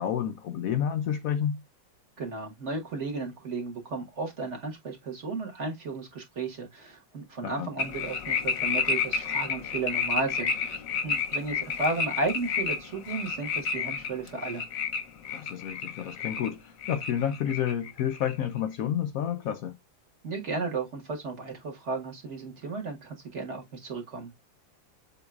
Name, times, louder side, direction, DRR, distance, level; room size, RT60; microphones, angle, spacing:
voice 1, 0.0-1.6 7.4-7.7 15.3-19.8, left 9 dB, 80° left, 0.7 m, -30 dB
voice 2, 2.2-14.6 20.2-24.3, right 3 dB, 40° right, 1.4 m, -34 dB
sound 1, 7.8-16.5 16.8-18.3, left 5 dB, 55° left, 1.1 m, -31 dB
7.8 x 2.9 x 2.3 m
omnidirectional pair, 2.1 m